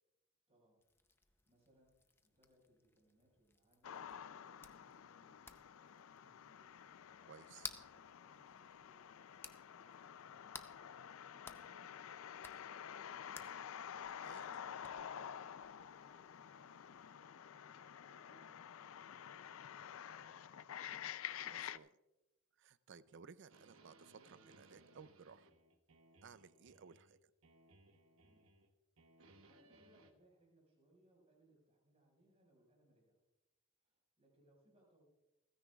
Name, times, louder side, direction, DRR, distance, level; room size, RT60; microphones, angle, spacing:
voice 1, 0.5-0.8 1.2-6.7 7.2-10.9 11.2-13.6 14.5-20.8 28.2-28.6 29.3-33.2 33.8-35.0, right 1 dB, 30° right, -1 dB, 5.1 m, -73 dB
sound 1, 0.8-17.2, left 3 dB, 10° left, 0.6 m, -58 dB
sound 2, 3.8-21.8, left 9 dB, 75° left, 0.4 m, -50 dB
voice 2, 7.3-7.7 14.2-14.5 21.5-21.9 22.6-25.5 26.2-27.2, right 6 dB, 60° right, 16 dB, 0.5 m, -58 dB
sound 3, 23.5-27.2 27.4-28.7 29.0-30.1, right 2 dB, 85° right, 1.1 m, -66 dB
29.0 x 9.8 x 2.3 m, 1.0 s
head